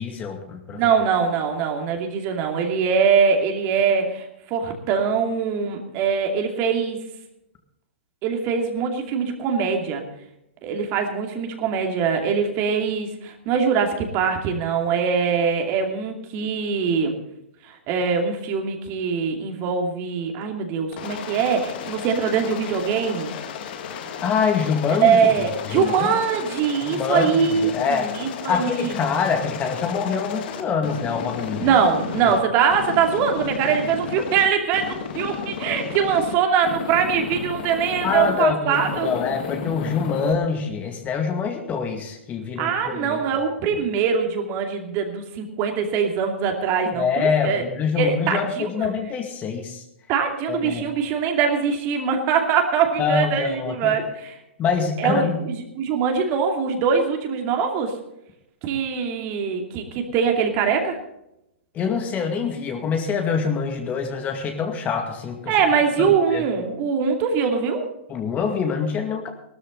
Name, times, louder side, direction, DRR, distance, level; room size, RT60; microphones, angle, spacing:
voice 1, 0.0-0.8 24.2-25.2 25.7-26.1 26.8-28.1 28.5-31.8 32.3-32.4 38.0-43.2 47.0-49.8 50.5-50.9 53.0-53.9 54.6-55.4 61.7-65.6 66.0-66.5 68.1-69.3, left 6 dB, 25° left, 4 dB, 2.2 m, -25 dB
voice 2, 0.7-7.0 8.2-10.0 10.6-17.1 17.6-23.3 25.0-28.9 31.6-39.1 42.6-47.6 48.0-48.9 50.1-54.4 55.0-57.9 58.6-61.0 65.5-67.8, right 6 dB, 35° right, 3 dB, 2.6 m, -22 dB
Aircraft, 20.9-32.4 32.7-34.5 34.7-36.3 36.6-38.4 38.7-40.3, left 7 dB, 50° left, 1.8 m, -33 dB
18.0 x 13.0 x 4.0 m, 0.83 s
figure-of-eight pair, 115°, 6 cm